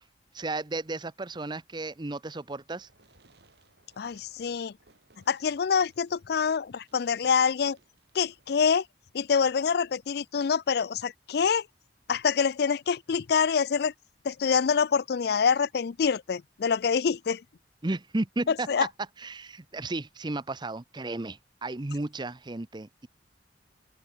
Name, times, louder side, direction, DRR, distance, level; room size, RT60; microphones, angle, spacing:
voice 1, 0.3-2.9 17.8-18.7 19.2-23.1, right 2 dB, 25° right, 0.7 m, -34 dB
Fireworks, 2.7-8.7, right 3 dB, 65° right, 3.3 m, -63 dB
voice 2, 4.0-4.7 5.3-7.8 8.1-8.8 9.1-11.6 12.1-13.9 14.2-17.4 18.5-18.9, left 6 dB, 60° left, 0.4 m, -26 dB
open air
head